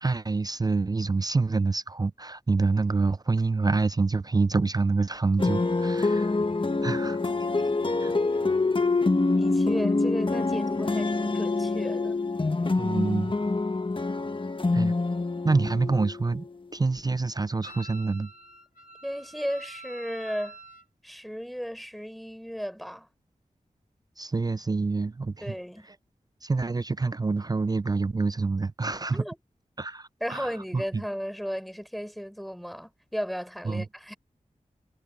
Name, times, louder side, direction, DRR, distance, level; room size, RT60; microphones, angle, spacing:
voice 1, 0.0-6.3 6.8-7.2 8.0-8.1 12.8-13.3 14.7-14.9 15.4-16.4 16.7-18.3 24.2-25.5 26.4-29.2 29.8-31.0 33.7-33.9, right 3 dB, 25° right, 0.3 m, -27 dB
sound 1, 5.4-16.6, left 3 dB, 35° left, 1.1 m, -26 dB
voice 2, 9.4-12.2 19.0-20.6 21.0-23.1 25.4-25.9 29.1-29.4 30.2-34.2, equal, ahead, 4.4 m, -35 dB
Wind instrument woodwind instrument, 17.6-20.9, right 1 dB, 80° left, 2.8 m, -46 dB
cardioid pair, 45°, 14 cm